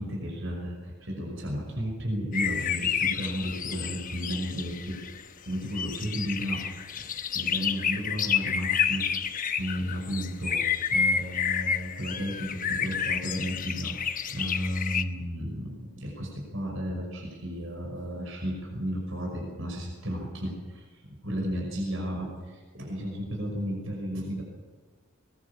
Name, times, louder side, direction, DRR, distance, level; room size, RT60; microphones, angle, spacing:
voice 1, 0.0-5.0 5.4-7.1 7.3-24.4, equal, 60° right, 0 dB, 5.6 m, -33 dB
sound 1, 2.3-5.2 5.7-15.0, left 7 dB, 40° left, 1.1 m, -30 dB
21.5 x 21.0 x 7.1 m, 1.4 s
head